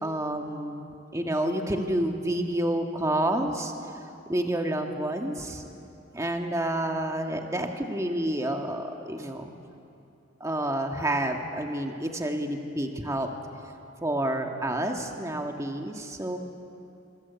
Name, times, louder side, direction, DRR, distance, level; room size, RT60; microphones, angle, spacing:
voice 1, 0.0-3.7 4.3-5.6 6.1-9.5 10.4-13.3 14.0-16.4, right 1 dB, 15° right, 3 dB, 1.7 m, -29 dB
26.5 x 25.0 x 8.3 m, 2.8 s
head